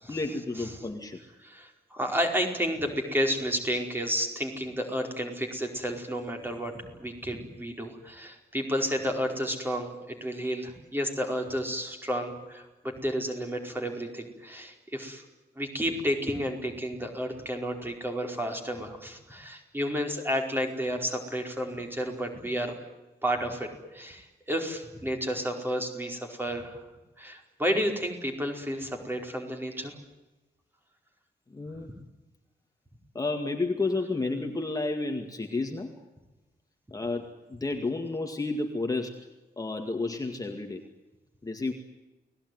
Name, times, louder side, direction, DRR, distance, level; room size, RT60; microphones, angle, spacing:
voice 1, 0.1-1.2 31.5-31.9 33.1-35.9 36.9-39.1 39.6-40.8 41.4-41.7, left 3 dB, 20° left, 4 dB, 2.1 m, -31 dB
voice 2, 1.4-6.7 7.0-15.2 15.6-22.7 23.2-26.8 27.2-29.9, equal, 10° right, 3 dB, 4.8 m, -31 dB
30.0 x 19.5 x 9.5 m, 1.1 s
wide cardioid pair, 165°, 17 cm